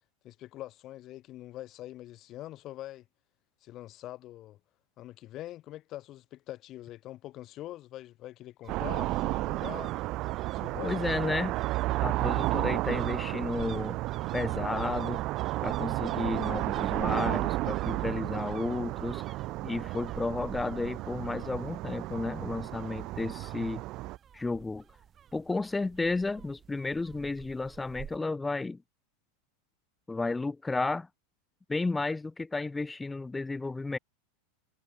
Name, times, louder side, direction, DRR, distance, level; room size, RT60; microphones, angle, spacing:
voice 1, 0.2-3.1 3.6-4.6 5.0-9.9 10.4-11.5, left 14 dB, 40° left, 4.3 m, -44 dB
sound 1, 8.6-28.2, right 8 dB, 30° right, 3.7 m, -50 dB
sound 2, 8.7-24.2, right 19 dB, 45° right, 0.4 m, -32 dB
voice 2, 10.8-11.5 12.0-14.0 14.3-15.2 15.6-19.2 19.6-23.8 24.3-24.8 25.3-28.8 30.1-31.1 31.7-34.0, left 3 dB, 10° left, 0.7 m, -32 dB
figure-of-eight pair, 90°, 0 cm